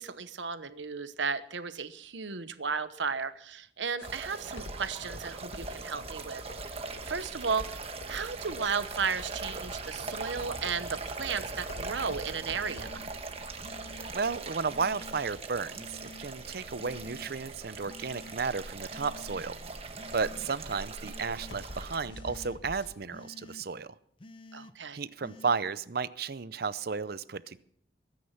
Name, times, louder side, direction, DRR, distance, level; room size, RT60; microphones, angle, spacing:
voice 1, 0.0-6.4 7.1-7.7 8.1-13.0 24.5-25.0, right 5 dB, 90° right, 12 dB, 1.0 m, -34 dB
sound 1, 4.0-23.0, left 1 dB, 80° left, 1.7 m, -48 dB
sound 2, 4.0-22.0, right 3 dB, 35° right, 1.3 m, -41 dB
sound 3, 12.6-13.1 13.6-14.1 14.7-15.2 15.8-16.3 16.8-17.3 17.9-18.4 18.9-19.4 19.9-20.5 21.0-21.6 22.1-22.6 23.1-23.7 24.2-24.7 25.2-25.6, left 2 dB, 30° left, 0.7 m, -50 dB
voice 2, 14.1-19.6 20.1-24.0 24.9-27.6, right 5 dB, 55° right, 16 dB, 0.6 m, -33 dB
22.0 x 9.6 x 5.8 m, 0.67 s
head